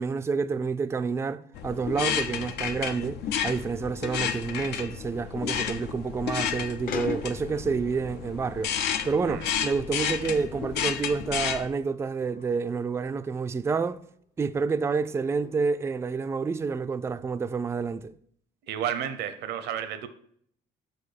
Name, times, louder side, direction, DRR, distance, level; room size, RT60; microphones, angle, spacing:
voice 1, 0.0-8.8 9.0-14.0 14.4-18.1, right 5 dB, 15° right, 0.3 m, -29 dB
sound 1, 1.5-11.7, left 8 dB, 80° left, 0.7 m, -31 dB
sound 2, 6.9-9.7 9.9-11.5 12.2-13.5 14.1-14.3 15.1-16.3, left 6 dB, 55° left, 0.9 m, -44 dB
voice 2, 18.7-20.1, right 9 dB, 80° right, 0.8 m, -31 dB
6.2 x 5.3 x 6.5 m
cardioid pair, 110°, 17 cm